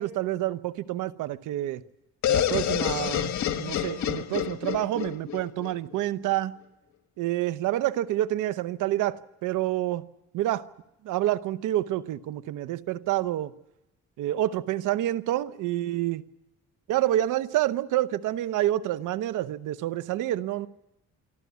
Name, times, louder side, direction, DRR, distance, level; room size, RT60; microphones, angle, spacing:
voice 1, 0.0-1.8 2.2-6.6 7.2-10.0 10.3-10.7 11.0-13.5 14.2-16.2 16.9-20.7, right 14 dB, 90° right, 0.9 m, -28 dB
sound 1, 2.2-6.0, left 10 dB, 70° left, 1.5 m, -28 dB
24.5 x 14.0 x 9.4 m
cardioid pair, 90°, 30 cm